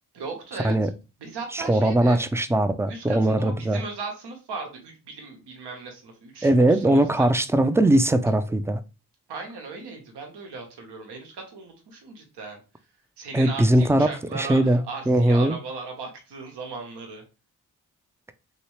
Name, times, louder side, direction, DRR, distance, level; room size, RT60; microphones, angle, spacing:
voice 1, 0.1-0.9 1.2-2.2 2.9-7.3 9.3-12.6 13.2-17.2, right 4 dB, 85° right, 1.0 m, -37 dB
voice 2, 1.5-3.8 6.4-8.8 13.3-14.1 14.3-14.8 15.1-15.6, right 1 dB, 5° right, 0.4 m, -20 dB
3.1 x 2.9 x 3.1 m
supercardioid pair, 45°, 40 cm